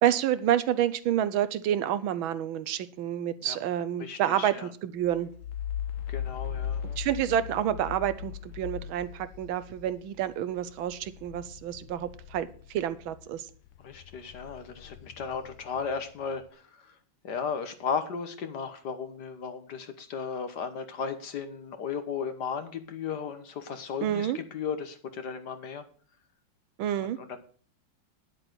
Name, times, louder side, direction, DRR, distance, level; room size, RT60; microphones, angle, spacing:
voice 1, 0.0-5.3 7.0-13.5 24.0-24.4 26.8-27.2, right 11 dB, 80° right, 14 dB, 1.6 m, -29 dB
voice 2, 4.0-4.7 6.1-7.0 13.8-17.0 17.2-25.9 27.0-27.4, left 6 dB, 60° left, 9 dB, 1.6 m, -35 dB
sound 1, 5.0-13.3 13.7-16.3, left 9 dB, 85° left, 1.7 m, -39 dB
10.0 x 7.8 x 6.1 m, 0.43 s
omnidirectional pair, 2.2 m